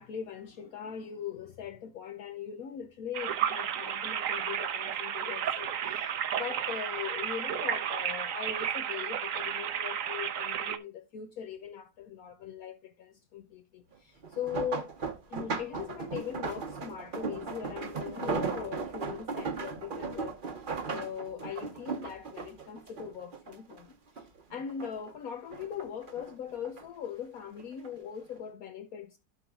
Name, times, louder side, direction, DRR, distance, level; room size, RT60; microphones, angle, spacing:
voice 1, 0.0-14.9 15.3-20.4 20.9-29.2, left 8 dB, 70° left, 1.2 m, -40 dB
sound 1, 3.1-10.8, right 9 dB, 65° right, 1.1 m, -32 dB
sound 2, 14.2-23.8 24.2-25.1 25.5-26.8 27.6-27.9 28.3-28.4, right 5 dB, 40° right, 1.0 m, -37 dB
12.0 x 4.6 x 3.6 m
omnidirectional pair, 1.7 m